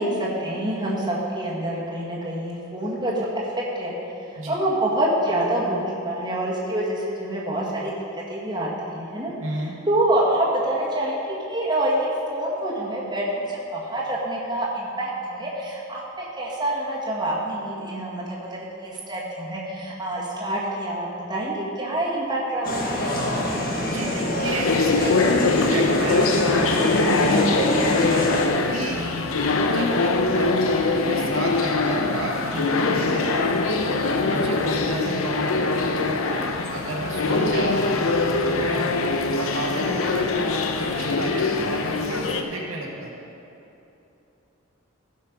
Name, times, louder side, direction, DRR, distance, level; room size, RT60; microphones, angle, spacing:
voice 1, 0.0-3.3 3.6-3.9 4.3-9.3 9.9-11.2 11.5-23.0 33.0-33.3 37.3-37.8, right 1 dB, 20° right, -6 dB, 1.7 m, -26 dB
voice 2, 9.4-9.7 23.8-27.7 28.6-29.0 29.6-33.3 33.8-35.9 36.7-38.1 38.4-39.0 39.4-43.1, right 1 dB, 85° right, -2 dB, 1.8 m, -32 dB
sound 1, 22.6-28.5, left 1 dB, 45° left, 1.4 m, -25 dB
sound 2, 24.5-42.4, left 3 dB, 80° left, 0.7 m, -23 dB
16.0 x 5.6 x 5.2 m, 2.9 s
head